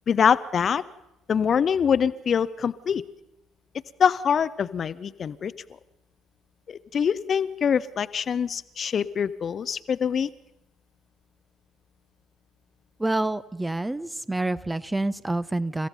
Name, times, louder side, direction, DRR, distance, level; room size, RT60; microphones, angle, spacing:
voice 1, 0.1-0.8 1.3-3.0 4.0-5.5 6.7-10.3, left 7 dB, 40° left, 15 dB, 0.7 m, -24 dB
voice 2, 13.0-15.9, right 2 dB, 10° right, 16 dB, 0.8 m, -27 dB
30.0 x 15.5 x 5.5 m, 0.90 s
figure-of-eight pair, 50°, 0 cm